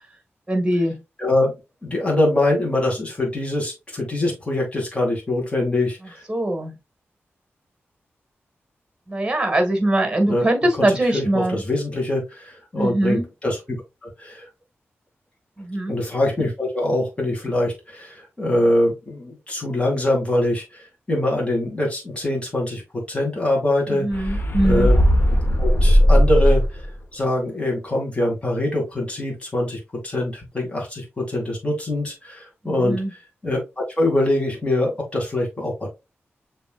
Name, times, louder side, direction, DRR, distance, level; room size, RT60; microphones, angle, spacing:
voice 1, 0.5-1.0 6.3-6.7 9.1-11.6 12.8-13.2 15.6-16.0 23.9-24.9 32.6-33.1, right 1 dB, 20° right, 1.7 m, -22 dB
voice 2, 1.2-1.5 1.8-6.2 10.3-10.5 10.8-13.8 14.0-14.5 15.9-25.0 25.6-26.9 27.1-35.9, left 1 dB, 25° left, 2.1 m, -24 dB
sound 1, 24.1-26.9, equal, 45° left, 1.1 m, -17 dB
6.8 x 3.3 x 2.3 m
wide cardioid pair, 80°, 5 cm